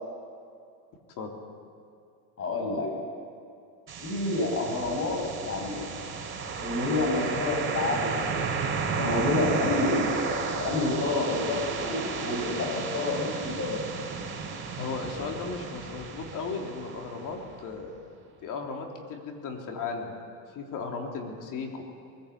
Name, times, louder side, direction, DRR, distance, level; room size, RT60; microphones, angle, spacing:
voice 1, 2.4-2.9 4.0-5.8 6.6-8.5 8.9-13.7, left 2 dB, 35° left, 0 dB, 7.5 m, -29 dB
sound 1, 3.9-17.8, right 5 dB, 30° right, 4.2 m, -33 dB
voice 2, 14.8-17.9 18.4-20.2 20.5-21.8, left 4 dB, 50° left, 2 dB, 3.6 m, -36 dB
22.0 x 15.5 x 8.4 m, 2.5 s
supercardioid pair, 110°, 41 cm